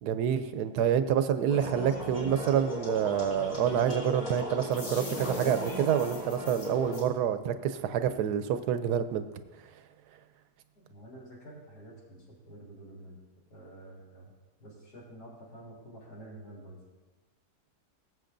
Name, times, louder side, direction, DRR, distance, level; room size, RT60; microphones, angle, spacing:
voice 1, 0.0-9.2, right 9 dB, 75° right, 11 dB, 1.1 m, -27 dB
sound 1, 1.5-7.0, left 1 dB, 65° left, 4.4 m, -37 dB
voice 2, 10.7-13.2 13.5-14.3 14.6-16.8, right 1 dB, 80° left, -4 dB, 3.8 m, -49 dB
19.0 x 7.7 x 2.6 m, 1.2 s
omnidirectional pair, 1.8 m